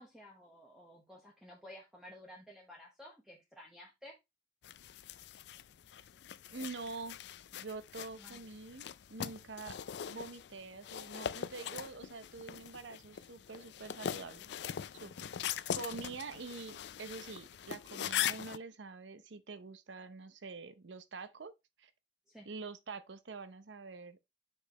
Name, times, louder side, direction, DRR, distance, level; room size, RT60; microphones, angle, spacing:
voice 1, 0.0-4.2 8.1-8.4 15.0-15.4 22.3-22.5, left 1 dB, 5° right, 1.1 m, -54 dB
sound 1, 4.6-18.6, left 9 dB, 70° left, 0.4 m, -41 dB
voice 2, 6.5-7.2 7.5-9.8 10.1-14.5 15.0-21.5 21.8-21.9 22.5-24.2, right 4 dB, 85° right, 0.7 m, -46 dB
6.4 x 5.3 x 3.0 m
head